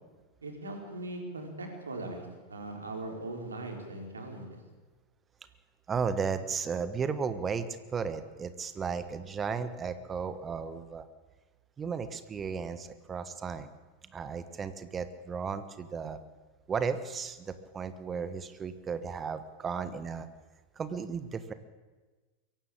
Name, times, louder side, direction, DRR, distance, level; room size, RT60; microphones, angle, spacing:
voice 1, 0.4-4.6, right 2 dB, 75° right, 3 dB, 4.7 m, -40 dB
voice 2, 5.9-11.0 11.8-13.7 14.1-16.2 16.7-20.3 20.8-21.5, right 6 dB, 20° right, 12 dB, 1.4 m, -34 dB
23.0 x 16.5 x 8.7 m, 1.3 s
figure-of-eight pair, 90°, 0 cm